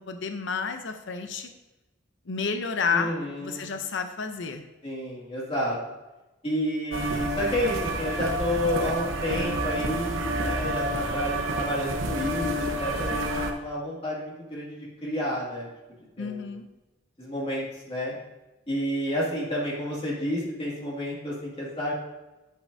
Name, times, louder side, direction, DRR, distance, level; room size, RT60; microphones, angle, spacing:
voice 1, 0.1-1.5 2.3-4.7 16.2-16.7, left 5 dB, 65° left, 6 dB, 0.7 m, -30 dB
voice 2, 2.9-3.7 4.8-5.8 6.4-15.7 16.2-16.5 17.2-18.1 18.7-21.9, equal, 30° left, -5 dB, 2.2 m, -30 dB
sound 1, 6.9-13.5, right 1 dB, 85° right, 1.0 m, -29 dB
10.5 x 8.4 x 2.7 m, 1.1 s
head